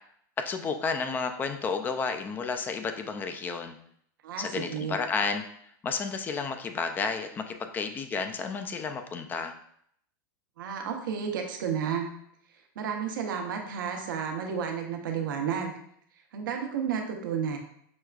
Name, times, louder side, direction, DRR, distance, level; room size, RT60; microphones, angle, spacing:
voice 1, 0.5-3.8 4.4-5.4 5.8-9.5, left 5 dB, 15° left, 7 dB, 0.3 m, -31 dB
voice 2, 4.2-5.0 10.6-12.1 12.8-15.7 16.3-17.6, right 7 dB, 85° right, 3 dB, 0.8 m, -31 dB
6.1 x 2.2 x 2.4 m, 0.68 s
supercardioid pair, 140°, 11 cm